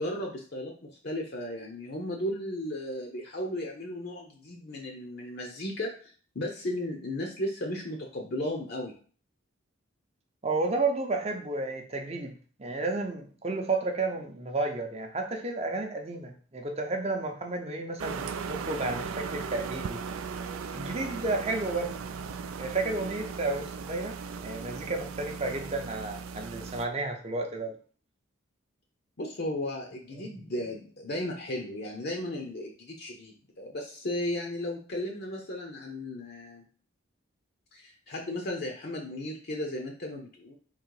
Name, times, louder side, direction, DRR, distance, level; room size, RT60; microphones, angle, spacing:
voice 1, 0.0-5.9 6.3-9.0 29.2-36.6 37.7-40.6, left 1 dB, 50° left, 1 dB, 0.7 m, -35 dB
voice 2, 10.4-12.3 12.6-20.0 20.7-21.9 22.6-24.2 24.4-27.8, right 3 dB, 30° right, 4 dB, 0.6 m, -32 dB
sound 1, 18.0-26.9, right 5 dB, 80° right, 0.4 m, -37 dB
3.8 x 3.0 x 4.7 m, 0.42 s
head